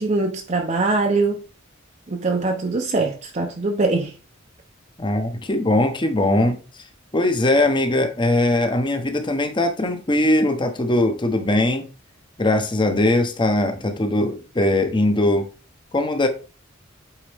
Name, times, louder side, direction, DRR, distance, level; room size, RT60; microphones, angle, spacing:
voice 1, 0.0-1.4 2.1-4.1, right 3 dB, 35° right, 0.7 m, -22 dB
voice 2, 5.0-6.6 7.1-11.9 12.4-15.5 15.9-16.3, left 1 dB, 25° left, 0.9 m, -20 dB
8.6 x 4.1 x 3.5 m
head